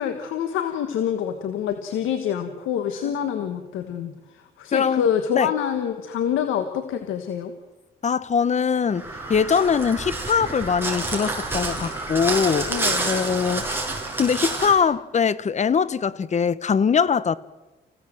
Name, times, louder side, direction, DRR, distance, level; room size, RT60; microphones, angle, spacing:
voice 1, 0.0-4.1 4.6-7.5 12.7-13.1, left 8 dB, 85° left, 1.5 m, -26 dB
voice 2, 4.7-5.1 5.3-5.5 8.0-12.7 13.1-13.9 14.2-17.4, left 6 dB, 35° left, 0.8 m, -22 dB
Crow, 8.9-14.8, right 2 dB, 10° right, 5.7 m, -28 dB
26.0 x 16.0 x 7.7 m
cardioid pair, 90°, 20 cm